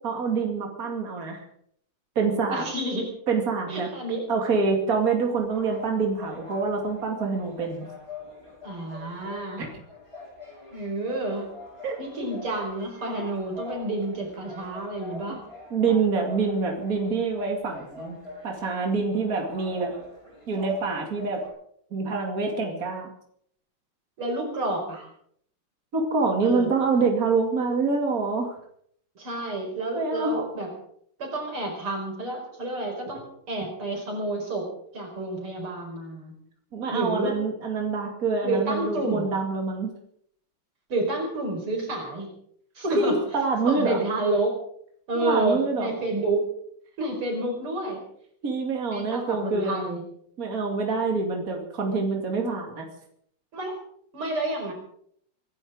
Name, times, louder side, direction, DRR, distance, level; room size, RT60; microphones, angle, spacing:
voice 1, 0.0-1.4 2.2-2.6 3.3-3.9 4.3-7.8 9.6-9.7 11.8-12.0 15.7-18.2 18.4-19.9 20.5-21.4 21.9-23.1 25.9-28.5 29.9-30.4 36.7-39.9 42.8-44.0 45.1-46.1 48.4-49.9 50.4-52.9, right 4 dB, 40° right, 2 dB, 2.8 m, -26 dB
voice 2, 2.5-3.1 3.7-4.2 8.6-9.7 10.7-11.5 12.0-15.4 24.2-25.1 26.4-26.7 29.2-30.7 31.2-34.7 34.9-36.3 36.9-37.3 38.4-39.3 40.9-42.3 42.8-43.2 43.6-44.6 45.1-46.5 47.0-48.0 48.9-50.0 53.5-53.8 54.1-54.7, right 2 dB, 85° right, 1 dB, 5.8 m, -29 dB
sound 1, 5.3-21.5, left 2 dB, 15° left, 5.9 m, -44 dB
24.5 x 11.5 x 5.0 m, 0.67 s
omnidirectional pair, 2.3 m